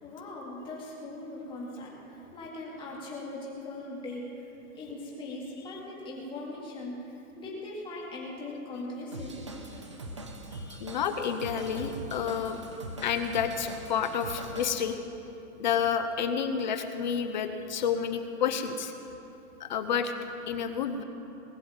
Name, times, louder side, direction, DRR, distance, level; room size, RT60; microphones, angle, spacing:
voice 1, 0.0-4.5 4.8-7.1 7.4-9.5, left 2 dB, 10° left, -5 dB, 2.2 m, -40 dB
Drum kit / Drum, 9.1-14.7, right 1 dB, 20° right, 0.4 m, -42 dB
voice 2, 10.5-12.6 13.0-14.9 15.6-18.9 19.6-20.1 20.5-21.0, left 7 dB, 30° left, 8 dB, 0.6 m, -30 dB
19.5 x 7.7 x 7.1 m, 2.8 s
hypercardioid pair, 165°, 44 cm